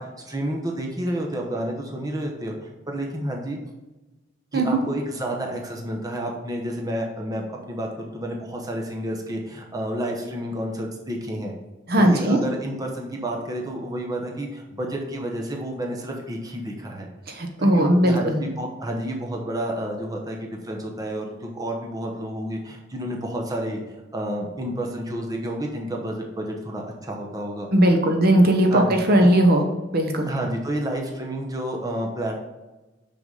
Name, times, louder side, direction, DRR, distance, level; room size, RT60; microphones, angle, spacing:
voice 1, 0.0-3.6 4.5-11.5 12.0-17.1 17.6-23.8 24.1-27.7 28.7-28.9 30.3-32.4, right 1 dB, 20° right, 0 dB, 0.9 m, -30 dB
voice 2, 11.9-12.4 17.3-18.4 27.7-29.6 29.9-30.3, right 1 dB, 55° right, 4 dB, 1.0 m, -18 dB
6.2 x 6.0 x 3.9 m, 1.1 s
head